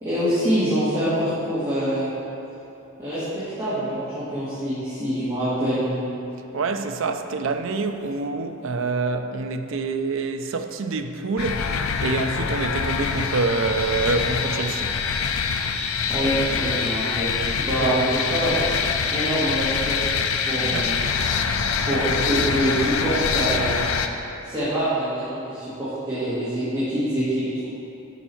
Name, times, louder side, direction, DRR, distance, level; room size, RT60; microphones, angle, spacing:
voice 1, 0.0-2.1 3.0-5.9 16.1-17.3 17.6-18.6 19.1-20.0 20.5-21.0 21.9-23.8 24.4-27.7, right 1 dB, 20° right, 1.9 m, -25 dB
voice 2, 6.5-15.0 17.7-18.0 20.6-20.9 21.9-22.0, right 3 dB, 60° right, 0.4 m, -26 dB
sound 1, 11.4-24.1, left 6 dB, 75° left, 0.5 m, -25 dB
7.2 x 5.4 x 5.7 m
head